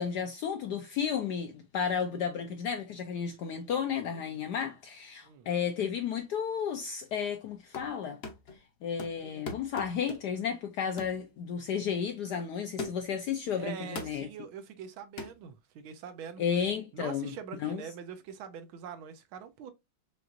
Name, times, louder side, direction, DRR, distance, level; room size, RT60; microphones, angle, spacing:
voice 1, 0.0-8.2 8.8-14.3 16.4-17.3 17.6-17.8, left 7 dB, 70° left, 1.0 m, -33 dB
sound 1, 7.5-8.0 8.2-8.6 9.0-10.4 11.0-11.2 11.7-11.9 12.8-13.2 14.0-14.3 15.2-15.4, left 3 dB, 50° left, 0.8 m, -41 dB
voice 2, 13.6-16.4 16.9-19.7, right 7 dB, 85° right, 1.5 m, -43 dB
5.9 x 2.5 x 2.5 m
omnidirectional pair, 2.2 m